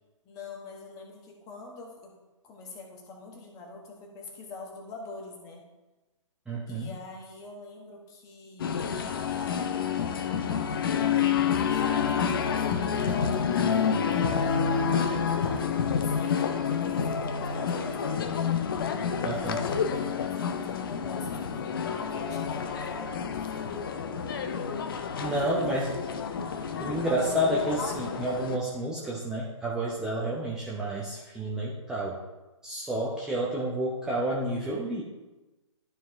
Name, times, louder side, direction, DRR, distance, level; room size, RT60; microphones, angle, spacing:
voice 1, 0.2-2.1 2.4-5.6 6.7-9.1 9.4-9.6 10.1-18.2 19.2-23.9 25.3-25.8, left 2 dB, 20° left, 1 dB, 1.4 m, -45 dB
voice 2, 6.5-6.9 19.2-19.6 25.2-25.9 26.8-32.2 32.6-35.0, right 1 dB, 5° right, -7 dB, 0.7 m, -30 dB
sound 1, 8.6-28.6, left 7 dB, 45° left, 0.7 m, -29 dB
12.0 x 4.8 x 3.5 m, 1.1 s
figure-of-eight pair, 130°, 17 cm